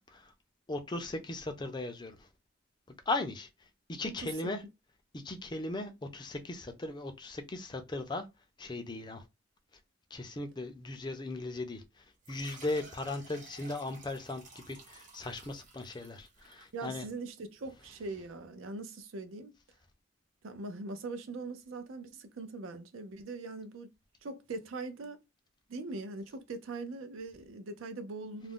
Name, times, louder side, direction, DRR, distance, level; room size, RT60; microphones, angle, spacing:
voice 1, 0.7-2.3 3.1-3.5 3.9-4.6 5.1-8.2 8.6-9.2 10.1-17.1, left 2 dB, 20° left, 0.4 m, -38 dB
voice 2, 4.0-4.5 16.7-19.6 20.4-23.9 24.2-25.2 25.7-28.5, right 3 dB, 80° right, 0.5 m, -41 dB
sound 1, 12.2-17.4, right 3 dB, 40° right, 0.8 m, -54 dB
2.4 x 2.0 x 3.5 m
head